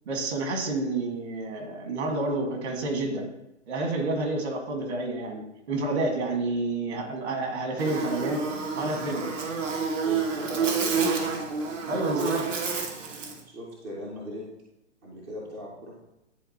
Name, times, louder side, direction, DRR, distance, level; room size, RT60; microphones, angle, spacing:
voice 1, 0.1-3.3 3.7-8.4 8.7-9.2 11.9-12.5, right 2 dB, 65° right, 3 dB, 1.8 m, -29 dB
voice 2, 7.8-8.2 9.2-9.3 10.0-11.4 13.4-14.4 15.0-16.0, left 1 dB, 10° right, -3 dB, 0.3 m, -39 dB
Buzz, 7.8-13.4, right 5 dB, 85° right, 1.3 m, -29 dB
9.7 x 3.9 x 2.9 m, 0.88 s
hypercardioid pair, 135°, 36 cm